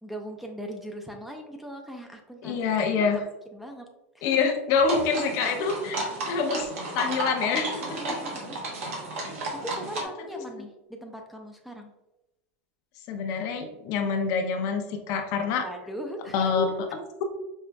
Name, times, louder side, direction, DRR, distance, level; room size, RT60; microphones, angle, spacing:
voice 1, 0.0-3.2 3.5-3.9 4.1-4.4 7.9-8.6 9.6-11.9 15.6-16.4, equal, 5° right, 2 dB, 0.5 m, -40 dB
voice 2, 2.4-3.2 4.2-8.2 13.1-15.7 16.3-17.2, left 5 dB, 55° left, 5 dB, 0.6 m, -26 dB
sound 1, 4.9-10.0, right 2 dB, 85° right, 1.1 m, -33 dB
5.2 x 2.4 x 2.2 m, 0.93 s
supercardioid pair, 115°, 7 cm